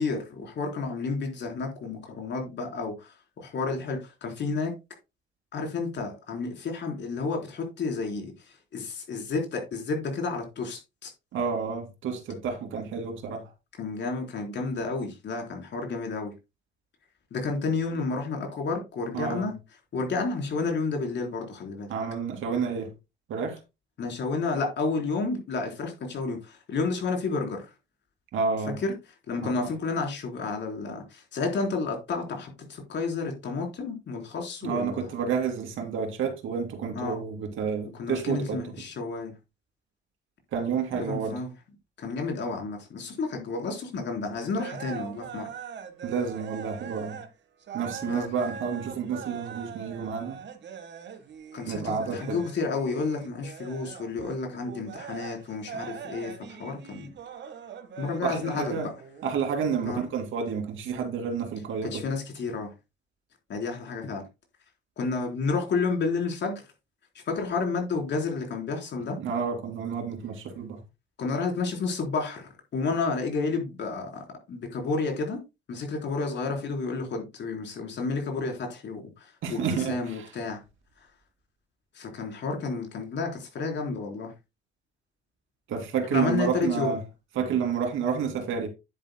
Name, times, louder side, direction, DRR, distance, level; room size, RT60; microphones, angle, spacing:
voice 1, 0.0-4.7 5.5-8.3 8.7-11.1 13.8-16.3 17.3-19.5 19.9-21.9 24.0-27.6 28.8-28.9 29.3-35.1 36.9-37.2 38.0-39.3 40.9-41.5 42.0-45.5 48.0-48.3 51.5-57.1 58.0-58.9 59.9-60.0 61.8-62.7 63.5-64.2 65.0-66.6 67.1-69.2 71.2-74.1 74.5-75.4 75.7-80.6 81.9-84.3 86.1-87.0, left 4 dB, 65° left, 3.9 m, -31 dB
voice 2, 11.3-13.5 19.1-19.5 21.9-22.9 23.3-23.6 28.3-28.8 29.4-29.5 34.6-38.7 40.5-41.4 46.0-47.2 47.7-50.4 51.7-52.4 58.2-58.9 59.2-62.0 69.2-70.8 79.4-80.3 85.7-87.0 87.3-88.7, right 6 dB, 80° right, 2.5 m, -30 dB
sound 1, 44.5-47.3 47.6-59.3, right 7 dB, 65° right, 1.4 m, -42 dB
10.0 x 9.1 x 2.2 m
cardioid pair, 90°, 20 cm